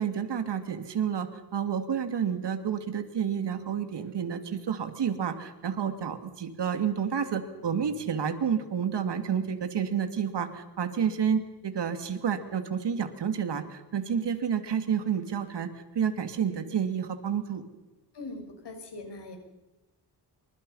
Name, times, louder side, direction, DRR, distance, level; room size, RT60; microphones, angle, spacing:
voice 1, 0.0-17.6, right 7 dB, 75° right, 8 dB, 2.8 m, -30 dB
voice 2, 18.1-19.4, left 2 dB, 70° left, 4 dB, 6.6 m, -41 dB
28.0 x 25.5 x 5.7 m, 1.1 s
wide cardioid pair, 155°, 42 cm